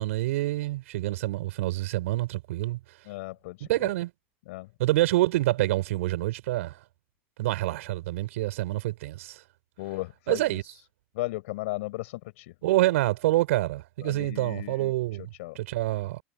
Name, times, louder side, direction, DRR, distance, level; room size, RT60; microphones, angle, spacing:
voice 1, 0.0-2.8 3.6-4.1 4.8-6.8 7.4-9.4 10.3-10.6 12.6-15.2 15.5-16.2, right 17 dB, 80° right, 6.3 m, -27 dB
voice 2, 3.1-3.9 4.5-4.7 9.8-10.6 11.1-12.5 14.0-14.9 15.2-15.6, left 20 dB, 75° left, 5.2 m, -36 dB
supercardioid pair, 115°, 7 cm